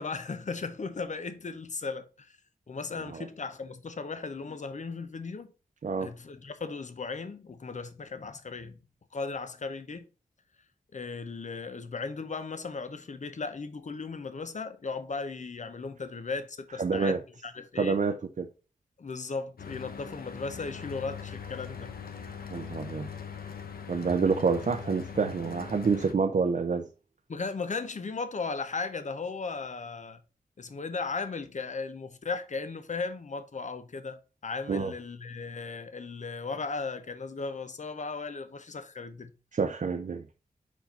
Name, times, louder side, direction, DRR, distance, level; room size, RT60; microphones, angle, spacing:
voice 1, 0.0-2.4 2.7-5.5 6.0-8.8 9.1-10.1 10.9-18.0 19.0-22.0 27.3-30.2 30.6-39.3, left 4 dB, 50° left, 0.8 m, -36 dB
voice 2, 16.8-17.2 17.8-18.5 22.5-23.1 23.9-26.9 34.7-34.9 39.5-40.2, right 5 dB, 55° right, 0.6 m, -27 dB
Mechanical fan, 19.6-26.1, left 7 dB, 85° left, 0.8 m, -41 dB
4.7 x 4.5 x 5.2 m
wide cardioid pair, 95°, 15 cm